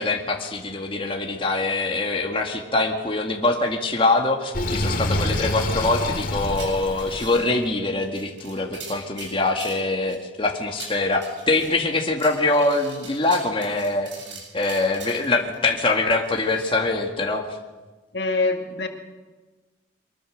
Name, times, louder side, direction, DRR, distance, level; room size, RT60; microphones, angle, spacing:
voice 1, 0.0-17.4, left 2 dB, 30° left, 1 dB, 2.0 m, -24 dB
Sink (filling or washing), 4.5-7.3, left 1 dB, 50° left, 2.5 m, -26 dB
sound 1, 6.4-7.7 8.0-10.2 10.6-11.7 12.2-15.6 16.2-16.7, right 4 dB, 85° right, 7.4 m, -42 dB
voice 2, 18.1-18.9, left 3 dB, 65° left, 4 dB, 2.4 m, -24 dB
24.0 x 21.5 x 6.5 m, 1.2 s
head